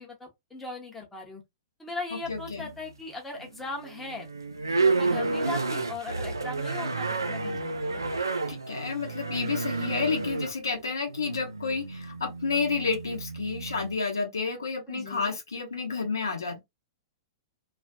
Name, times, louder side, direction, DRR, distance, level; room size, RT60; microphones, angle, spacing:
voice 1, 0.0-1.4 1.8-4.3 4.8-8.0 14.9-15.3, left 3 dB, 10° left, 0.8 m, -39 dB
sound 1, 2.2-2.9 3.4-14.0, right 3 dB, 80° right, 0.4 m, -31 dB
voice 2, 2.3-2.7 8.5-16.6, left 4 dB, 70° left, 0.7 m, -30 dB
2.4 x 2.4 x 2.2 m
figure-of-eight pair, 105°, 2 cm